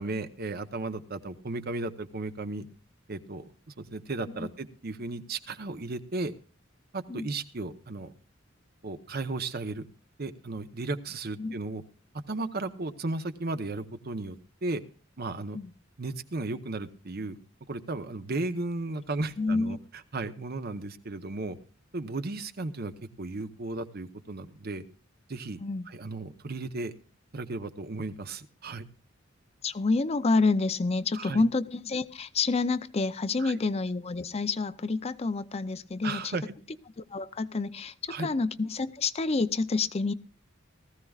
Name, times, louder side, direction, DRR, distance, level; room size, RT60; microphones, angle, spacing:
voice 1, 0.0-2.7 3.1-3.4 3.8-6.3 6.9-8.1 8.8-9.8 10.2-11.8 12.3-14.8 15.2-15.6 16.0-17.4 17.7-19.8 20.1-21.6 21.9-22.9 23.2-24.8 25.3-25.6 25.9-26.9 27.3-28.9 31.1-31.4 33.4-33.5 36.0-36.4 38.1-38.3, right 2 dB, 50° right, 10 dB, 0.9 m, -35 dB
voice 2, 19.4-19.8 25.6-25.9 29.6-36.4 37.0-40.1, left 3 dB, 30° left, 13 dB, 0.5 m, -28 dB
19.0 x 14.5 x 2.4 m, 0.37 s
head